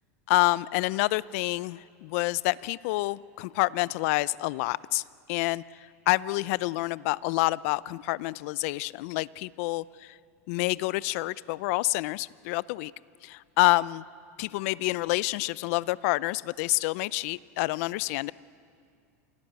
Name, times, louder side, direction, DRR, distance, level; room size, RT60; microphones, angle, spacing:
voice 1, 0.3-5.0 5.3-5.6 6.1-9.8 10.5-12.9 13.2-14.0 14.4-18.3, left 21 dB, 65° left, 20 dB, 0.5 m, -27 dB
26.5 x 17.0 x 9.4 m, 2.3 s
supercardioid pair, 120°, 8 cm